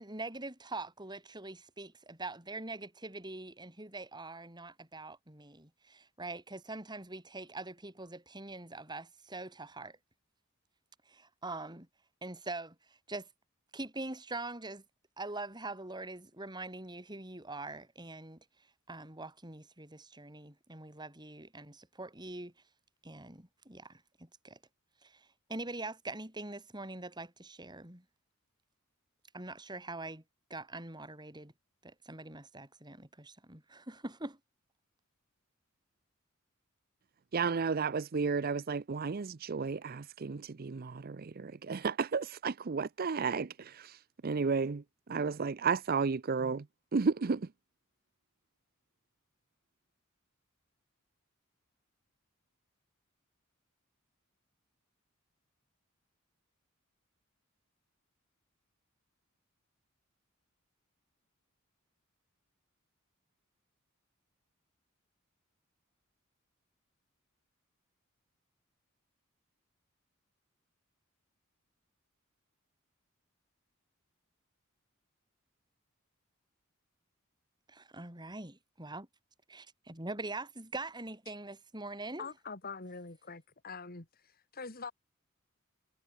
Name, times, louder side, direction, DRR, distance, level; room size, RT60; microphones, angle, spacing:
voice 1, 0.0-10.0 11.1-11.9 12.2-12.7 13.1-13.3 13.7-14.8 15.2-18.4 18.9-22.5 23.0-24.6 25.0-28.0 29.3-30.2 30.5-31.5 31.8-34.4 77.7-79.1 79.5-82.3, right 2 dB, 20° right, 5.0 m, -43 dB
voice 2, 37.3-44.0 44.2-44.8 45.1-46.6 46.9-47.4, right 5 dB, 45° right, 0.5 m, -32 dB
voice 3, 82.2-84.1 84.5-84.9, left 4 dB, 45° left, 2.3 m, -43 dB
head